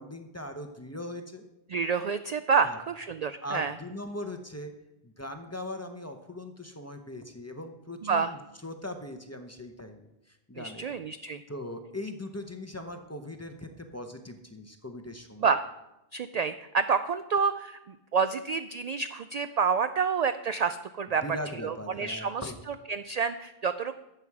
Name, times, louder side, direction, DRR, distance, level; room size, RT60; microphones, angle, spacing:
voice 1, 0.0-1.4 2.6-2.8 3.4-4.7 5.0-10.0 10.3-10.9 11.5-15.5 21.2-22.5, left 1 dB, 15° left, 6 dB, 0.8 m, -40 dB
voice 2, 1.7-3.7 8.0-8.3 10.6-11.4 15.4-15.6 16.1-21.2 21.6-23.9, right 5 dB, 55° right, 11 dB, 0.4 m, -28 dB
13.0 x 8.0 x 4.8 m, 0.92 s
omnidirectional pair, 1.1 m